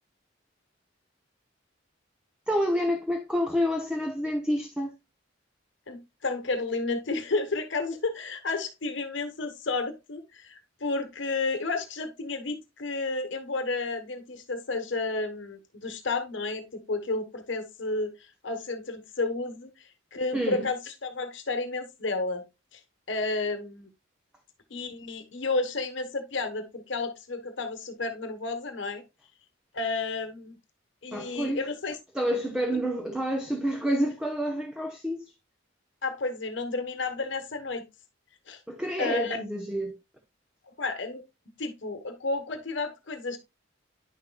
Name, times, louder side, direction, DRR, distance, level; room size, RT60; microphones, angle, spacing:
voice 1, 2.5-4.9 20.3-20.7 31.1-31.7 32.1-35.3 38.7-40.0, equal, 5° right, 0.8 m, -28 dB
voice 2, 5.9-22.4 22.7-22.8 23.1-23.9 24.7-29.0 29.7-30.6 31.0-32.0 36.0-37.9 38.5-38.6 39.0-39.4 40.8-41.2 41.6-43.4, left 3 dB, 65° left, 1.1 m, -31 dB
10.0 x 6.5 x 2.2 m
head